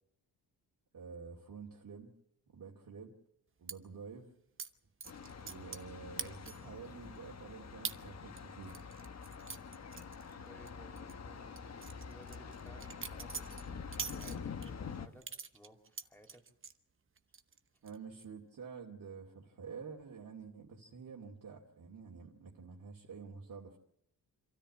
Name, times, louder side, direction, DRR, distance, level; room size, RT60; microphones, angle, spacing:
voice 1, 0.9-2.1 2.5-3.2 3.6-4.4 5.4-8.8 17.8-23.8, right 5 dB, 55° right, -2 dB, 2.5 m, -49 dB
sound 1, 3.7-3.8 4.6-4.7 5.0-5.9 6.2-6.7 7.1-7.2 7.8-8.0 8.4-10.7 11.0-11.1 11.6-14.7 15.2-16.8 17.2-17.6 17.9-18.2, right 6 dB, 30° right, 0.9 m, -44 dB
Thunder, 5.0-15.1, left 6 dB, 40° left, 1.3 m, -46 dB
voice 2, 10.5-13.4 14.2-15.3 15.5-16.4, equal, 5° left, 4 dB, 3.3 m, -59 dB
26.0 x 13.5 x 8.5 m, 0.76 s
cardioid pair, 120°, 39 cm